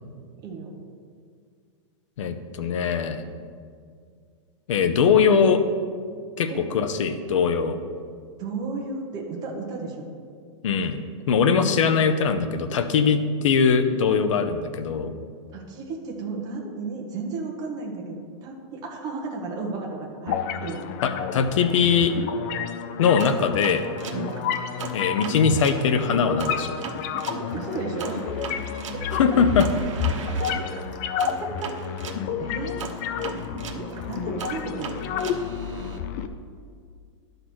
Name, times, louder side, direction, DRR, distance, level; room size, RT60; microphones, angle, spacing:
voice 1, 0.4-0.8 6.5-6.6 8.4-10.1 15.5-20.8 24.1-24.3 27.5-28.3 29.1-29.4 30.4-30.5 31.4-32.0 32.4-32.8 34.1-35.0, right 3 dB, 25° right, -1 dB, 1.2 m, -33 dB
voice 2, 2.2-3.2 4.7-5.6 6.4-7.8 10.6-11.0 11.3-15.1 21.0-22.1 23.0-23.8 24.9-26.8 29.2-29.7, left 6 dB, 80° left, 9 dB, 0.8 m, -21 dB
sound 1, 20.3-36.3, left 7 dB, 35° left, 0.4 m, -30 dB
sound 2, 23.2-25.8 26.4-32.2 32.8-36.0, right 6 dB, 90° right, 1.0 m, -38 dB
11.5 x 4.0 x 6.1 m, 2.1 s
supercardioid pair, 165°, 16 cm